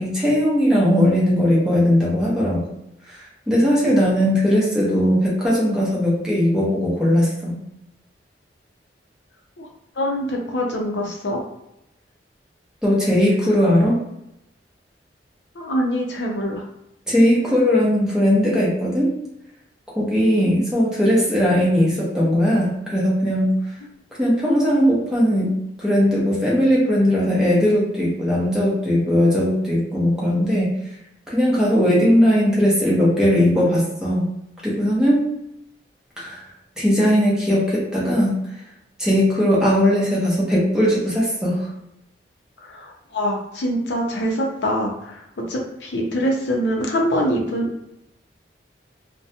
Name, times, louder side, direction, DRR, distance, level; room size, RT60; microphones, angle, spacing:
voice 1, 0.0-2.7 3.5-7.6 12.8-14.0 17.1-19.1 20.0-23.5 24.2-30.7 31.3-34.3 34.6-35.3 36.2-36.4 36.8-38.4 39.0-41.7, equal, 5° right, -7 dB, 0.8 m, -18 dB
voice 2, 10.0-11.4 15.6-16.6 42.6-47.9, equal, 75° left, 0 dB, 0.6 m, -24 dB
2.4 x 2.1 x 2.7 m, 0.84 s
head